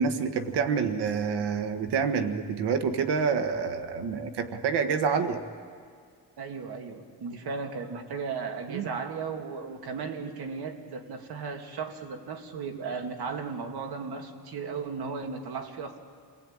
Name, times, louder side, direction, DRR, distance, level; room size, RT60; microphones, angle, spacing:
voice 1, 0.0-5.4 8.7-8.9, right 6 dB, 90° right, 8 dB, 1.5 m, -27 dB
voice 2, 6.4-16.0, right 5 dB, 70° right, 4 dB, 2.4 m, -36 dB
28.5 x 20.0 x 8.9 m, 2.1 s
cardioid pair, 125°, 39 cm